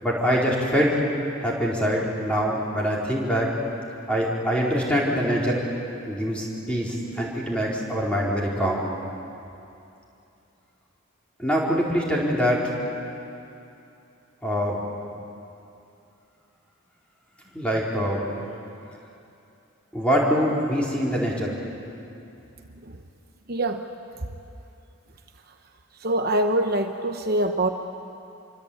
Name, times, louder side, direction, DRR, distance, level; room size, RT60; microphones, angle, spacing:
voice 1, 0.0-1.0 1.4-3.5 4.1-5.6 6.1-8.9 11.4-12.7 14.4-14.8 17.5-18.2 19.9-21.5, equal, 5° left, -4 dB, 4.5 m, -24 dB
voice 2, 23.5-23.8 26.0-27.7, right 1 dB, 45° right, 5 dB, 1.0 m, -24 dB
27.0 x 24.0 x 8.8 m, 2.7 s
head